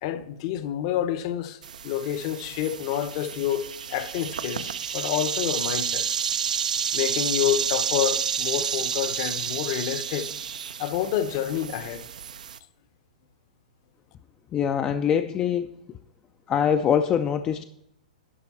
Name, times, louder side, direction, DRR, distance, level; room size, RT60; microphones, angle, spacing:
voice 1, 0.0-6.1 6.9-10.3 10.8-12.1, left 11 dB, 45° left, 0.7 m, -28 dB
sound 1, 1.6-12.6, right 8 dB, 85° right, 0.5 m, -30 dB
voice 2, 14.5-15.7 16.5-17.6, left 8 dB, 20° left, 0.3 m, -23 dB
11.0 x 5.2 x 4.1 m
hypercardioid pair, 145°, 4 cm